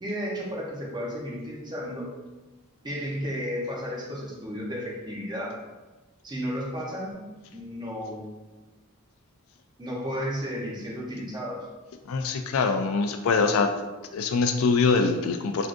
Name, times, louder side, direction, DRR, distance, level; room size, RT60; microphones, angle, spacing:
voice 1, 0.0-2.1 2.8-5.6 6.2-7.2 7.5-8.6 9.8-11.7, equal, 20° right, -3 dB, 0.6 m, -33 dB
voice 2, 12.1-13.7 14.1-15.7, left 4 dB, 70° left, 7 dB, 0.3 m, -23 dB
3.5 x 2.4 x 2.5 m, 1.2 s
head